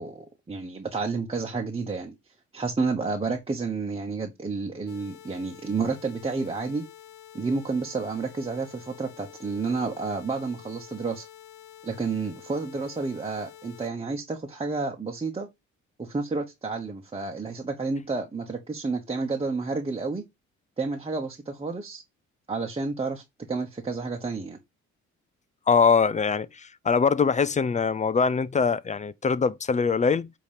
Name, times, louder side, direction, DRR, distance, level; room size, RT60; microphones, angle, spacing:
voice 1, 0.0-2.1 2.5-6.8 7.3-11.3 11.8-15.5 16.0-20.2 20.8-22.0 22.5-24.6, right 4 dB, 20° right, 1.1 m, -30 dB
sound 1, 4.9-13.9, left 11 dB, 75° left, 1.0 m, -48 dB
voice 2, 25.7-30.3, left 5 dB, 25° left, 0.4 m, -23 dB
8.4 x 3.0 x 5.1 m
cardioid pair, 90°, 30 cm